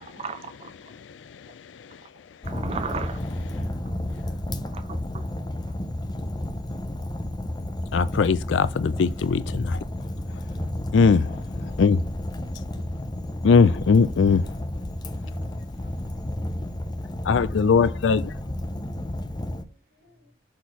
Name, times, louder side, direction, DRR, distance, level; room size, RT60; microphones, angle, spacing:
voice 1, 0.0-0.7 2.0-2.1 2.4-3.2 4.6-5.3 5.7-5.8, right 5 dB, 30° right, 0.4 m, -35 dB
voice 2, 0.8-2.5 3.6-3.7 4.1-4.2 7.9-9.8 10.3-10.4 10.9-12.0 12.5-12.6 13.4-14.6 15.2-15.4 17.2-18.4, left 5 dB, 70° left, 0.4 m, -22 dB
Fire, 2.4-19.6, left 1 dB, 20° left, 0.6 m, -32 dB
voice 3, 11.6-13.1 15.4-16.1 17.2-20.3, left 2 dB, 55° left, 3.1 m, -58 dB
voice 4, 13.4-14.6 14.9-17.3 18.7-20.3, right 1 dB, 55° right, 2.1 m, -59 dB
6.5 x 4.1 x 5.7 m
head